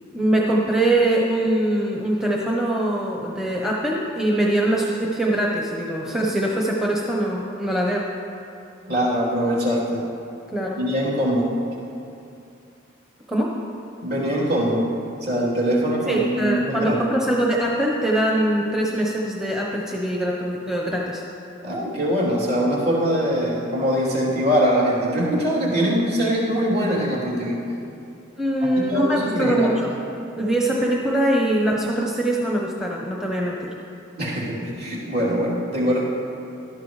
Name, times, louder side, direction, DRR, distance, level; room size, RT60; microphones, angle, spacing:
voice 1, 0.1-8.1 10.5-10.8 13.3-13.6 16.1-21.2 28.4-29.9 30.4-33.7, right 1 dB, 5° right, -3 dB, 0.8 m, -22 dB
voice 2, 8.9-10.0 10.8-11.5 14.0-14.8 15.2-17.0 21.6-27.6 28.9-29.7 34.2-36.0, equal, 50° right, -7 dB, 3.3 m, -22 dB
17.5 x 12.5 x 3.2 m, 2.6 s
head